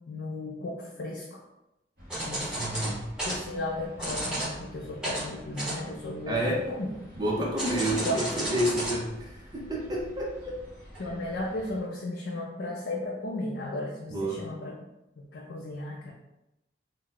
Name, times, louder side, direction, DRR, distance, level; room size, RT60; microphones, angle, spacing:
voice 1, 0.1-1.4 2.2-2.6 3.2-6.9 7.7-8.2 11.0-14.7 15.2-16.1, left 1 dB, 80° left, -3 dB, 0.5 m, -35 dB
sound 1, 2.0-11.8, equal, 50° right, 1.0 m, -49 dB
sound 2, 2.1-3.4 4.0-4.5 5.0-5.3 5.6-6.1 7.6-9.0 9.3-9.4 10.2-10.4 11.0-11.1, right 1 dB, 5° right, 0.9 m, -32 dB
voice 2, 2.6-3.1 6.3-6.6 7.2-10.6 14.1-14.4, right 1 dB, 20° right, -2 dB, 0.4 m, -30 dB
2.7 x 2.1 x 3.8 m, 0.92 s
head